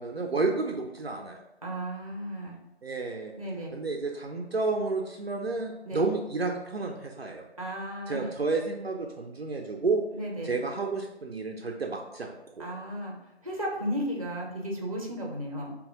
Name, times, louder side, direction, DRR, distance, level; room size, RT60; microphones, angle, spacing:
voice 1, 0.0-1.4 2.8-3.3 3.7-7.4 8.1-10.0 10.4-12.6, right 3 dB, 60° right, 2 dB, 0.6 m, -31 dB
voice 2, 1.6-2.6 3.3-3.8 5.8-6.0 7.6-8.3 10.1-10.6 12.6-15.8, equal, 30° right, -1 dB, 0.8 m, -34 dB
3.7 x 2.9 x 3.7 m, 0.94 s
figure-of-eight pair, 160°, 34 cm